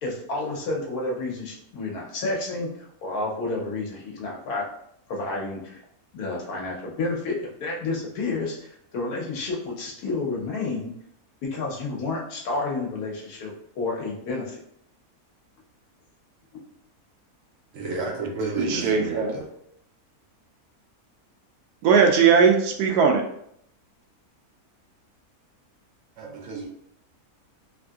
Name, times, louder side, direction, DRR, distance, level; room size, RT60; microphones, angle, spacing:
voice 1, 0.0-2.7 3.0-4.6 5.1-5.8 6.1-10.9 11.4-14.6, left 3 dB, 80° left, 1.2 m, -30 dB
voice 2, 17.7-19.5 26.2-26.7, right 3 dB, 65° right, 0.9 m, -31 dB
voice 3, 18.6-19.3 21.8-23.2, right 6 dB, 90° right, 1.1 m, -19 dB
3.2 x 2.6 x 2.3 m
omnidirectional pair, 1.6 m